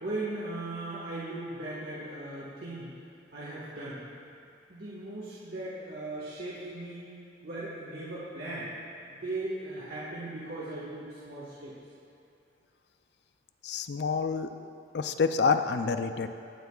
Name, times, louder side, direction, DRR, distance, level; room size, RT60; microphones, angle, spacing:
voice 1, 0.0-2.9 3.3-4.1 4.7-7.1 7.4-8.7 9.0-11.7, right 2 dB, 60° right, -8 dB, 1.6 m, -38 dB
voice 2, 13.6-14.5 14.9-16.3, left 5 dB, 65° left, 9 dB, 0.4 m, -27 dB
18.5 x 8.1 x 2.4 m, 2.6 s
head